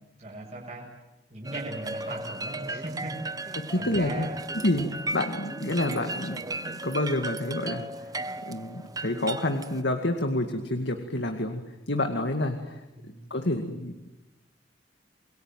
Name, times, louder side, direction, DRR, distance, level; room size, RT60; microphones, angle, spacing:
voice 1, 0.2-0.9 1.3-4.7 12.9-13.2, right 2 dB, 35° right, -3 dB, 7.4 m, -39 dB
sound 1, 1.4-9.8, right 2 dB, 20° right, 1.0 m, -36 dB
voice 2, 3.6-4.3 4.6-8.1 8.5-12.8 13.3-14.1, left 1 dB, 70° left, 5 dB, 2.3 m, -29 dB
28.5 x 23.0 x 9.2 m, 0.99 s
head